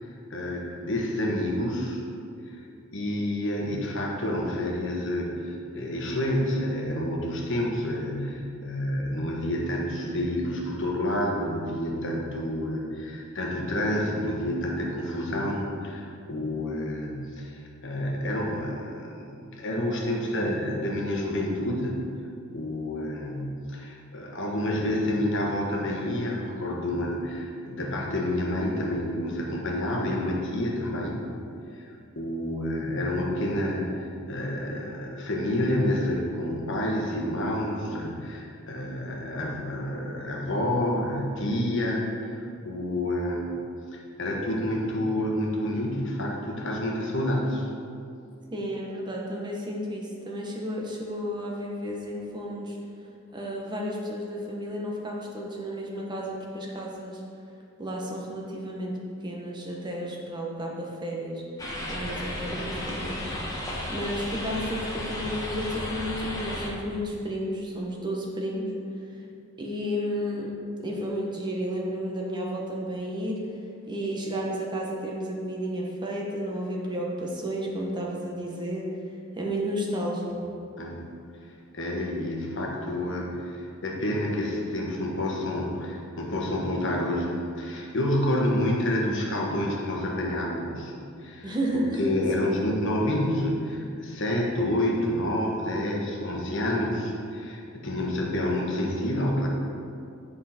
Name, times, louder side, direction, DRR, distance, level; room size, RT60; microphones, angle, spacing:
voice 1, 0.3-2.0 2.5-2.6 2.9-22.0 22.5-31.2 31.8-43.5 43.9-47.7 80.8-81.0 81.7-90.9 91.2-99.5, left 1 dB, 60° left, -1 dB, 1.2 m, -29 dB
voice 2, 48.5-52.8 53.3-57.2 57.8-59.0 59.2-61.4 61.9-63.3 63.9-68.7 69.6-70.5 70.8-73.4 73.9-78.9 79.3-80.3 91.4-92.1, equal, 20° right, -2 dB, 1.0 m, -32 dB
sound 1, 61.6-66.7, left 1 dB, 15° left, 1.1 m, -34 dB
8.2 x 5.5 x 4.3 m, 2.5 s
head